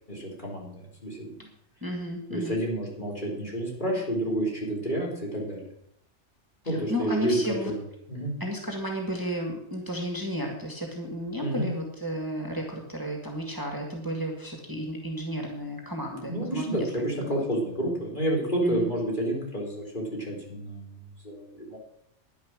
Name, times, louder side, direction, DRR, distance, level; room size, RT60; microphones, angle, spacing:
voice 1, 0.1-1.5 2.3-5.6 6.7-7.4 7.7-7.8 8.1-8.4 11.4-11.7 16.2-21.8, right 1 dB, 40° left, -3 dB, 4.3 m, -30 dB
voice 2, 1.8-2.6 6.6-7.7 8.4-17.5 18.6-18.9, equal, 15° right, 1 dB, 1.9 m, -33 dB
10.5 x 10.5 x 6.2 m, 0.72 s
omnidirectional pair, 1.3 m